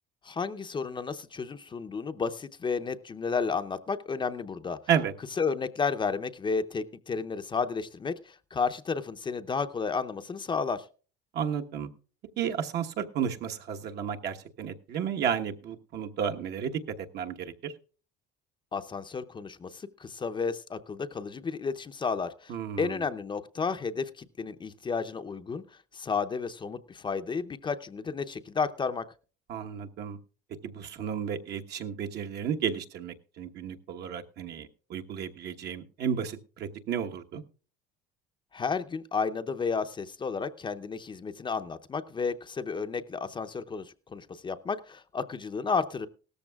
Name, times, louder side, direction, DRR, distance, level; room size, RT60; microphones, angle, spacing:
voice 1, 0.2-4.8 5.4-10.8 18.7-25.6 25.9-29.1 38.5-46.1, left 5 dB, 25° left, 8 dB, 0.7 m, -32 dB
voice 2, 11.3-11.9 12.4-17.7 22.5-23.0 29.5-30.2 30.6-37.4, right 8 dB, 55° right, 5 dB, 1.2 m, -32 dB
17.5 x 13.5 x 2.3 m, 0.38 s
cardioid pair, 120°, 20 cm